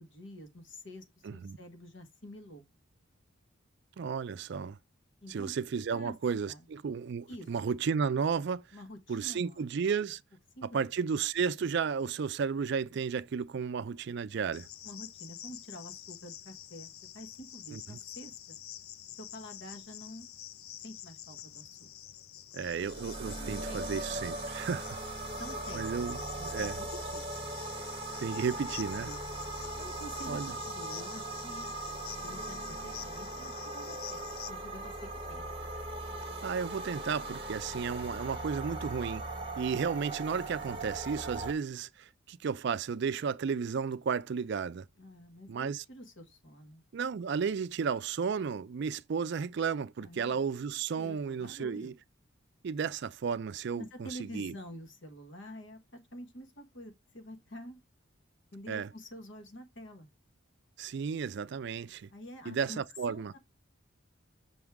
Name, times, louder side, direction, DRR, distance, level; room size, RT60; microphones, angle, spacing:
voice 1, 0.0-1.1 1.3-2.6 5.2-5.5 5.9-6.1 6.5-6.7 7.3-7.5 8.7-9.7 10.6-11.1 14.8-18.6 19.2-20.3 20.8-21.9 23.4-24.2 25.3-25.8 26.4-27.3 29.0-29.2 29.7-31.7 32.2-35.5 45.0-46.8 50.0-50.4 51.0-51.9 53.7-57.8 58.5-60.1 62.1-62.8 63.1-63.4, equal, 60° left, 1.3 m, -48 dB
voice 2, 1.2-1.6 4.0-4.8 5.3-8.6 9.1-10.2 10.6-14.7 17.7-18.0 22.5-25.0 25.7-26.2 26.5-26.8 28.2-29.1 30.3-30.5 36.4-39.2 39.6-44.9 45.5-45.8 46.9-51.9 52.6-54.5 58.7-58.9 60.8-62.1 62.5-63.3, right 6 dB, 55° right, 0.3 m, -33 dB
Cricket, 14.5-34.5, left 11 dB, 80° left, 0.5 m, -48 dB
sound 1, 22.6-41.5, right 2 dB, 25° right, 1.2 m, -39 dB
6.1 x 3.6 x 4.5 m
head